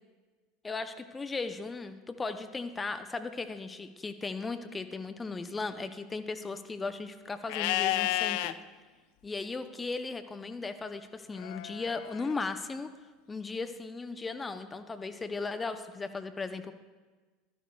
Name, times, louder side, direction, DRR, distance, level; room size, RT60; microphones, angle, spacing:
voice 1, 0.6-8.5 9.2-12.9 13.3-16.7, left 3 dB, 20° left, 9 dB, 0.6 m, -37 dB
Livestock farm animals working animals, 7.5-8.5 11.4-12.3, left 15 dB, 60° left, 0.3 m, -31 dB
14.5 x 12.0 x 2.3 m, 1.3 s
figure-of-eight pair, 75°, 0 cm